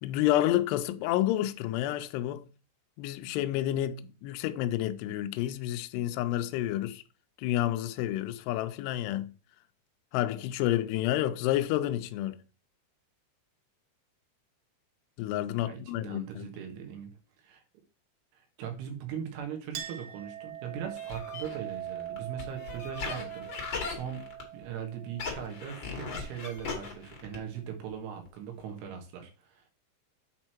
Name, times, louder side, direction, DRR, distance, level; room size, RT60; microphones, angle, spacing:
voice 1, 0.0-2.5 3.0-7.0 7.4-9.3 10.1-12.4 15.2-16.5, left 13 dB, 85° left, 2.4 m, -29 dB
voice 2, 15.6-17.1 17.4-17.6 18.3-24.2 24.5-29.7, right 8 dB, 90° right, 3.9 m, -40 dB
Chink clink, 19.7-26.8, right 11 dB, 70° right, 2.4 m, -42 dB
sound 1, 21.0-24.7 25.1-27.6 27.9-28.0 28.2-28.3 28.6-28.7, left 5 dB, 65° left, 1.2 m, -38 dB
8.3 x 4.5 x 4.5 m
omnidirectional pair, 5.4 m